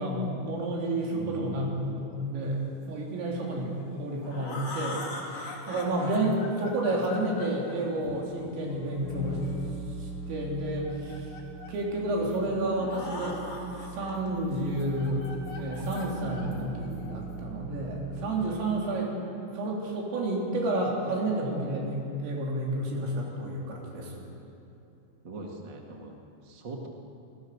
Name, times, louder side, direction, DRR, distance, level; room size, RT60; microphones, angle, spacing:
voice 1, 0.0-9.4 10.0-11.3 11.7-13.4 13.9-15.2 15.6-19.1 19.6-24.1, right 1 dB, 75° right, -2 dB, 6.1 m, -30 dB
voice 2, 1.1-1.6 25.2-26.2 26.5-26.9, right 3 dB, 55° right, 1 dB, 1.2 m, -40 dB
sound 1, 3.8-9.7 10.7-11.8 12.3-12.4 12.6-14.2 14.6-17.3, left 2 dB, 35° left, 3.5 m, -42 dB
sound 2, 8.7-18.6, right 2 dB, 75° left, 1.8 m, -41 dB
26.0 x 20.0 x 6.8 m, 2.8 s
omnidirectional pair, 5.9 m